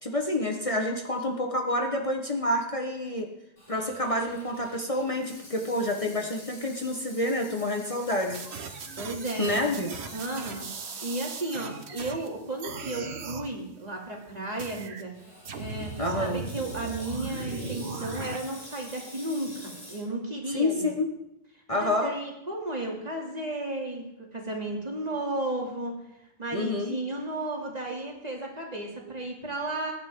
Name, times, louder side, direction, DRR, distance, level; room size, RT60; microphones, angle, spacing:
voice 1, 0.0-3.3 3.7-8.4 9.4-9.9 16.0-16.4 20.5-21.1 21.7-22.1 26.5-27.0, left 1 dB, 30° left, 2 dB, 1.3 m, -28 dB
Water tap faucet / Sink (filling or washing), 3.6-12.0 12.4-12.5 13.3-13.6 15.1-20.0, equal, 50° left, 4.9 m, -48 dB
sound 1, 8.3-12.3 12.6-13.5 14.6-15.0 15.4-18.4, right 5 dB, 75° right, 1.3 m, -38 dB
voice 2, 9.0-9.8 10.1-10.6 11.0-15.1 15.6-20.9 21.7-25.9 26.4-29.9, right 2 dB, 40° right, -1 dB, 2.7 m, -34 dB
20.5 x 10.0 x 3.7 m, 0.86 s
omnidirectional pair, 1.1 m